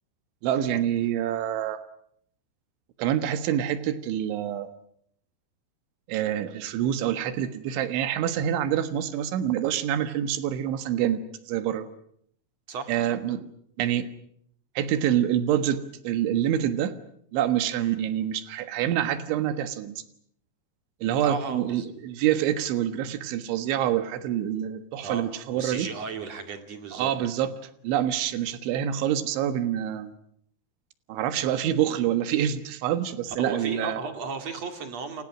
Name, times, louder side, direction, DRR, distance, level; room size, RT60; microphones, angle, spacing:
voice 1, 0.4-1.8 3.0-4.7 6.1-11.9 12.9-13.5 13.8-14.1 14.8-17.0 17.3-20.0 21.0-25.9 26.9-27.5 27.8-30.1 31.1-34.0, right 10 dB, 85° right, 11 dB, 3.9 m, -26 dB
voice 2, 12.7-13.2 17.8-18.0 21.2-21.9 25.0-27.1 33.4-35.2, right 5 dB, 45° right, 7 dB, 2.9 m, -35 dB
29.5 x 28.0 x 6.1 m, 0.68 s
omnidirectional pair, 5.2 m